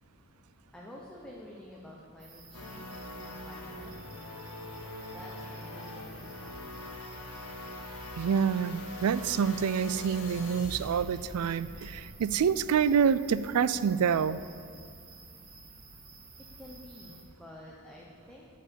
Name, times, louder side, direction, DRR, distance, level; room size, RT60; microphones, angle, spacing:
voice 1, 0.7-3.9 5.1-6.6 16.6-18.5, left 1 dB, 5° left, -4 dB, 0.9 m, -50 dB
sound 1, 2.2-17.2, right 4 dB, 70° right, 2.2 m, -52 dB
sound 2, 2.5-15.6, left 1 dB, 85° left, 1.3 m, -44 dB
voice 2, 8.2-14.4, right 7 dB, 85° right, 16 dB, 0.4 m, -27 dB
12.5 x 5.1 x 8.6 m, 2.3 s
head